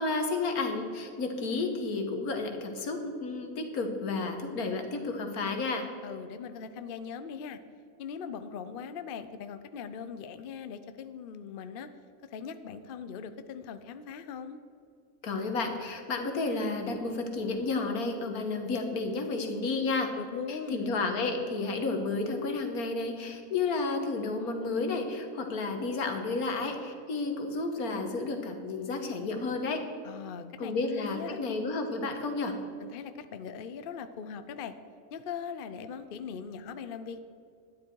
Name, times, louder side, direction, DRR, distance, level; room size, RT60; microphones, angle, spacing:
voice 1, 0.0-5.9 15.2-20.1 20.5-29.8 30.6-32.6, left 3 dB, 85° left, 5 dB, 1.8 m, -31 dB
voice 2, 6.0-7.6 8.0-11.9 12.3-14.6 20.2-20.9 30.0-31.4 32.8-34.7 35.1-37.2, left 6 dB, 55° left, 10 dB, 0.7 m, -40 dB
12.5 x 9.9 x 4.6 m, 2.4 s
omnidirectional pair, 1.5 m